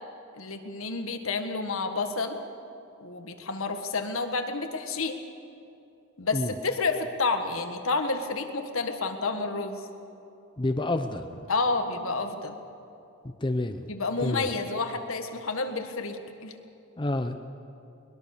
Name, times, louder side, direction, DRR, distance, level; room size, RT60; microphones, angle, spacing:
voice 1, 0.3-2.4 3.0-5.2 6.2-9.9 11.5-12.6 13.9-16.5, left 3 dB, 75° left, 6 dB, 1.7 m, -30 dB
voice 2, 10.6-11.2 13.4-13.8 14.2-14.5 17.0-17.4, left 2 dB, 20° left, 7 dB, 0.7 m, -28 dB
21.5 x 21.5 x 6.7 m, 2.8 s
head